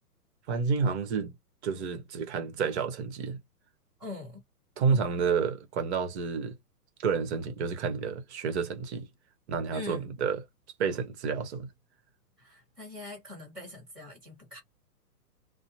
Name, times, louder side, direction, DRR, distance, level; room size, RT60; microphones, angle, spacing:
voice 1, 0.5-1.3 1.6-3.4 4.8-6.6 7.0-9.1 9.5-10.4 10.8-11.7, right 5 dB, 45° right, 1.0 m, -30 dB
voice 2, 4.0-4.4 4.9-5.1 9.7-10.1 12.4-14.6, left 3 dB, ahead, 0.4 m, -43 dB
2.8 x 2.1 x 2.7 m
hypercardioid pair, 135°, 48 cm